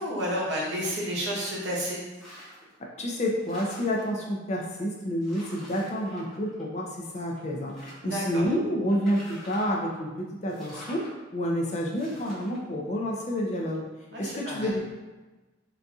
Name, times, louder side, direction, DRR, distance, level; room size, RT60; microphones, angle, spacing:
voice 1, 0.0-2.0 8.0-8.4 14.1-14.7, equal, 65° right, -5 dB, 0.9 m, -30 dB
sound 1, 2.1-2.7 3.1-4.2 4.8-4.9 5.2-6.9 7.3-8.2 8.9-9.9 10.5-11.1 11.9-12.6, equal, ahead, 0.8 m, -47 dB
voice 2, 3.0-13.9 14.2-14.8, equal, 35° left, -1 dB, 0.4 m, -29 dB
3.9 x 2.6 x 2.3 m, 1.2 s
head